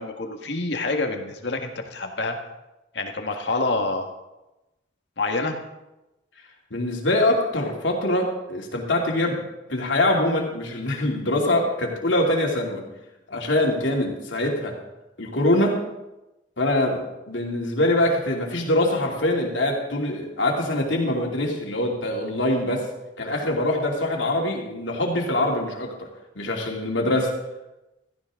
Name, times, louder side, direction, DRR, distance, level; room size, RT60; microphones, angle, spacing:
voice 1, 0.0-2.4 2.9-4.1 5.2-5.6, left 3 dB, 70° left, 4 dB, 1.7 m, -27 dB
voice 2, 6.7-9.4 9.7-12.8 13.3-14.8 15.2-15.8 16.6-22.9 23.2-26.1 26.3-27.4, left 1 dB, 90° left, 0 dB, 2.8 m, -24 dB
16.0 x 14.5 x 3.8 m, 0.98 s
head